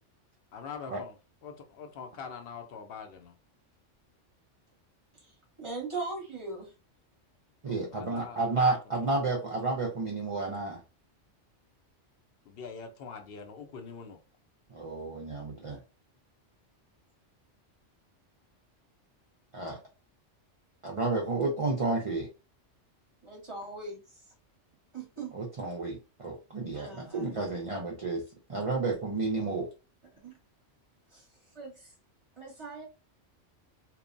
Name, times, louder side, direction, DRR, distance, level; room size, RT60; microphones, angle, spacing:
voice 1, 0.5-1.2 1.4-3.3 7.6-9.0 12.4-14.2, left 6 dB, 60° left, 0.7 m, -44 dB
voice 2, 5.2-6.7 23.2-24.0 24.9-25.4 26.7-27.3 30.1-30.4 31.1-31.3 31.5-31.9 32.4-32.8, right 3 dB, 30° right, 0.8 m, -40 dB
voice 3, 7.6-10.8 14.7-15.8 19.5-19.8 20.8-22.3 25.3-28.2 28.5-29.7, right 3 dB, 50° right, 0.4 m, -31 dB
3.0 x 2.0 x 2.5 m
omnidirectional pair, 1.2 m